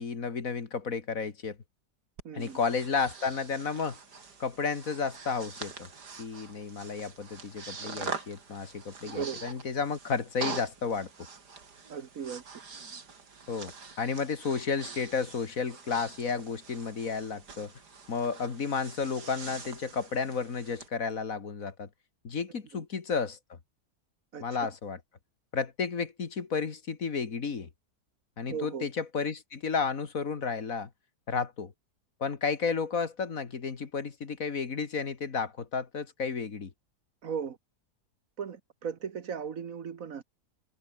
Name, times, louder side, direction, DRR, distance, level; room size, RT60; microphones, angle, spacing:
voice 1, 0.0-1.6 2.3-4.0 4.4-5.9 6.2-11.1 13.5-17.7 18.1-21.9 22.2-23.6 24.4-25.0 25.5-27.7 28.4-30.9 31.3-31.7 32.2-36.7, left 5 dB, 55° left, 2.2 m, -32 dB
voice 2, 2.2-2.6 9.0-9.4 11.9-12.4 22.7-22.8 24.3-24.7 28.5-28.9 37.2-37.6 38.4-40.2, right 7 dB, 60° right, 1.5 m, -37 dB
Breathing, 2.2-20.9, right 5 dB, 80° right, 3.3 m, -44 dB
omnidirectional pair, 1.7 m